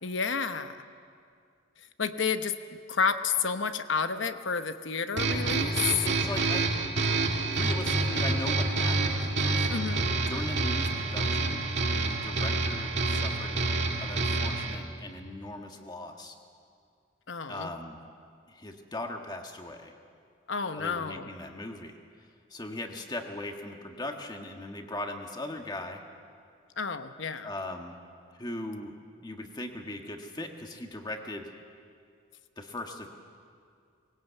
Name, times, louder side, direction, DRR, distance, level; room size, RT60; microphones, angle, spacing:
voice 1, 0.0-0.8 2.0-6.0 9.7-10.0 17.3-17.7 20.5-21.3 26.8-27.5, left 5 dB, 70° left, 9 dB, 1.0 m, -30 dB
sound 1, 5.2-14.8, right 3 dB, 60° right, 2.1 m, -28 dB
voice 2, 5.8-6.7 7.4-10.0 10.3-13.6 14.0-16.4 17.5-18.0 18.5-19.9 20.8-21.9 22.5-26.0 27.4-28.0 28.4-28.9 29.2-31.5 32.6-33.1, left 1 dB, 20° left, 3 dB, 1.6 m, -39 dB
21.0 x 18.0 x 8.2 m, 2.3 s
head